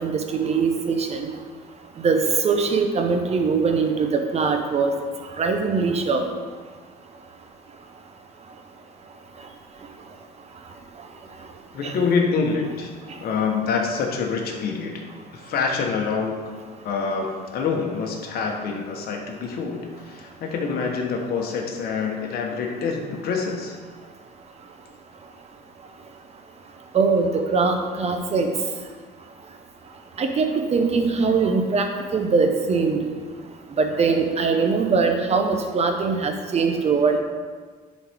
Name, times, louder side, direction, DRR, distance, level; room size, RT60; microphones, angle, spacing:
voice 1, 0.0-1.3 2.0-4.9 5.4-6.2 11.8-11.9 26.9-28.5 30.2-33.0 33.8-37.2, right 4 dB, 40° right, 5 dB, 0.9 m, -22 dB
voice 2, 11.7-12.9 13.2-14.9 15.3-16.4 16.8-19.8 20.1-23.8, left 5 dB, 65° left, 1 dB, 1.3 m, -26 dB
10.5 x 4.2 x 3.6 m, 1.5 s
cardioid pair, 110°, 17 cm